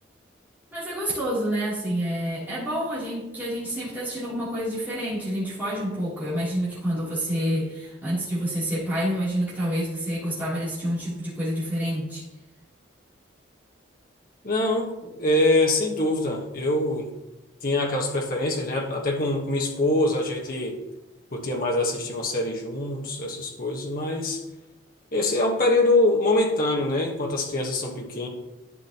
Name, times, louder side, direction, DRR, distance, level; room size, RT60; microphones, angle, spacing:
voice 1, 0.7-12.2, equal, 10° right, -11 dB, 3.2 m, -28 dB
voice 2, 14.4-17.1 17.6-20.8 21.3-24.4 25.1-28.3, left 2 dB, 45° left, -1 dB, 1.3 m, -24 dB
11.5 x 6.0 x 3.0 m, 0.99 s
head